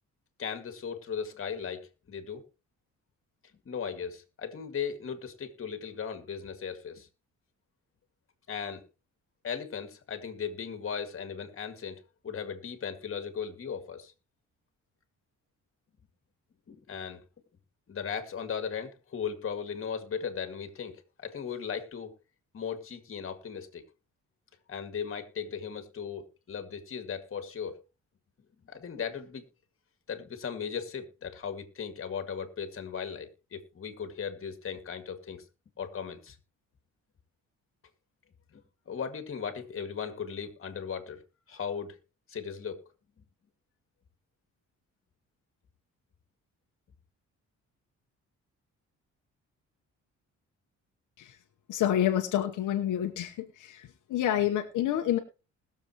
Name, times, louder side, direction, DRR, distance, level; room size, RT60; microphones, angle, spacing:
voice 1, 0.4-2.4 3.7-7.1 8.5-8.8 9.4-14.1 16.7-17.2 17.9-20.9 21.2-22.1 22.5-23.8 24.7-27.8 28.6-29.4 30.1-35.4 35.8-36.4 38.5-41.2 41.5-42.0 42.3-42.8, left 7 dB, 45° left, 2.2 m, -37 dB
voice 2, 51.7-53.3 53.6-53.8 54.1-55.2, left 11 dB, 80° left, 1.1 m, -27 dB
20.5 x 7.2 x 3.0 m
cardioid pair, 90°, 30 cm